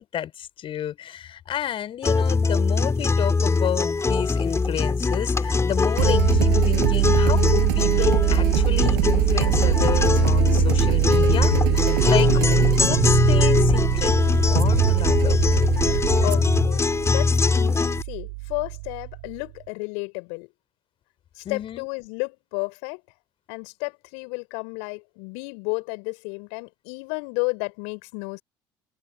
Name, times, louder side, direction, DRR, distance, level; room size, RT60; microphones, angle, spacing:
voice 1, 0.0-12.4 12.8-14.1 14.5-15.4 21.4-21.9, left 10 dB, 50° left, 5.8 m, -31 dB
sound 1, 2.0-18.0, left 4 dB, 25° left, 6.3 m, -21 dB
sound 2, 6.0-19.4, right 29 dB, 70° right, 6.6 m, -23 dB
voice 2, 15.7-20.5 21.4-23.0 23.5-28.4, left 37 dB, 70° left, 5.8 m, -32 dB
figure-of-eight pair, 60°, 12 cm